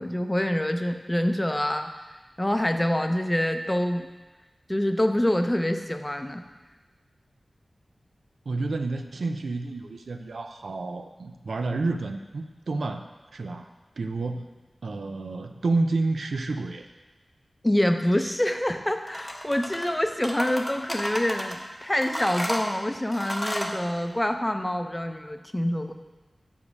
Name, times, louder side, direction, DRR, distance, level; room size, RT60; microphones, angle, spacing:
voice 1, 0.0-1.9 2.4-4.1 4.7-6.4 17.6-25.9, left 1 dB, 15° left, 6 dB, 0.6 m, -26 dB
voice 2, 8.5-13.1 13.3-13.7 14.0-14.5 14.8-16.9, right 3 dB, 85° right, 7 dB, 0.5 m, -29 dB
sound 1, 19.1-19.9 20.2-21.6 22.0-23.8, equal, 5° right, 1.0 m, -32 dB
7.1 x 4.9 x 5.3 m, 1.2 s
wide cardioid pair, 55°, 0 cm